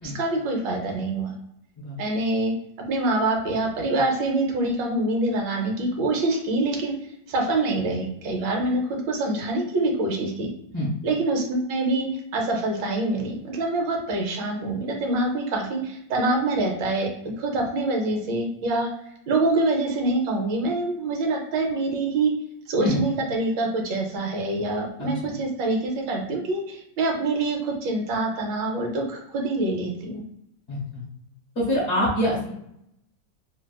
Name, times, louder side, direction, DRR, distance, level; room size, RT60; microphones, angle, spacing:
voice 1, 0.0-1.3 2.0-6.9 7.3-10.5 11.0-17.1 17.4-18.9 19.3-22.3 22.7-30.2, right 2 dB, 80° right, 1 dB, 1.4 m, -25 dB
voice 2, 25.0-25.3 30.7-30.8 31.5-32.5, equal, 45° left, -4 dB, 1.1 m, -25 dB
3.3 x 2.3 x 2.2 m, 0.77 s
omnidirectional pair, 2.0 m